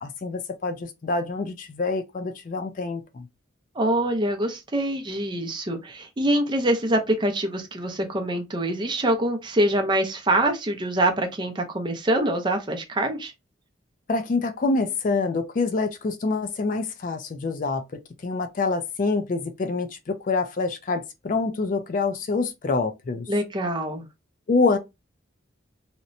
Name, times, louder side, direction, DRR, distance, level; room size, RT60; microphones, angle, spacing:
voice 1, 0.0-3.3 14.1-17.8 18.2-23.3 24.5-24.8, left 3 dB, 40° left, 0.4 m, -26 dB
voice 2, 3.8-13.3 23.3-24.0, right 1 dB, 25° right, 0.5 m, -24 dB
2.8 x 2.1 x 2.5 m
head